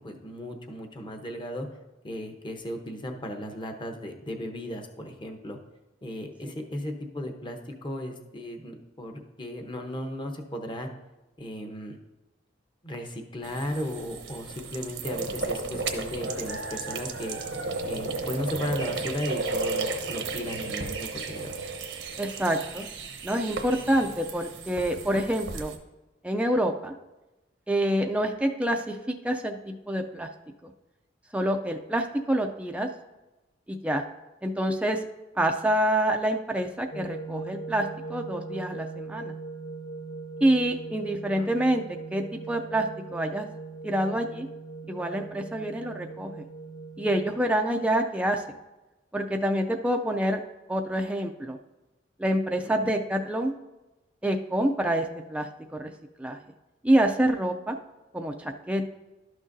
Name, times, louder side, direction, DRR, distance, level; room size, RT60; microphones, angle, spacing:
voice 1, 0.0-1.7 2.0-5.6 6.0-10.9 11.4-12.0 12.8-17.4 17.8-21.5 41.4-41.5 52.6-52.7, equal, 25° left, 4 dB, 0.8 m, -35 dB
sound 1, 13.4-25.8, right 3 dB, 85° right, 0.9 m, -34 dB
voice 2, 22.2-22.9 23.2-25.7 26.2-26.9 27.7-30.3 30.6-30.7 31.3-32.9 33.7-34.0 34.4-35.0 35.4-39.3 40.4-41.8 42.1-43.5 43.8-44.5 44.9-46.5 47.0-48.6 49.1-50.4 50.7-51.6 52.2-53.5 54.2-55.9 56.2-56.4 56.8-57.8 58.1-58.9, right 1 dB, 5° right, 3 dB, 0.4 m, -27 dB
sound 2, 36.9-47.3, right 3 dB, 80° left, 1.5 m, -40 dB
12.0 x 6.2 x 2.6 m, 1.0 s
head